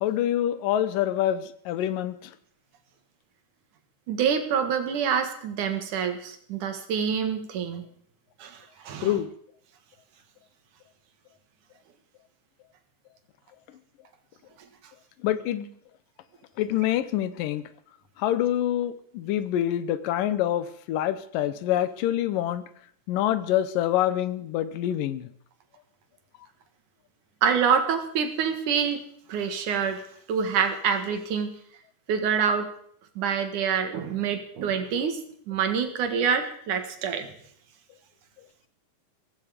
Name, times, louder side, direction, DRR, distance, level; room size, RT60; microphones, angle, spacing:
voice 1, 0.0-2.3 9.0-9.3 15.2-15.7 16.6-17.6 18.2-22.6 23.1-25.3, left 12 dB, 80° left, 14 dB, 2.5 m, -26 dB
voice 2, 4.1-7.8 8.4-9.2 27.4-29.0 29.3-30.0 30.3-31.5 32.1-32.7 33.2-35.2 35.5-37.3, right 7 dB, 70° right, 7 dB, 3.1 m, -26 dB
16.5 x 16.0 x 5.0 m, 0.64 s
omnidirectional pair, 3.8 m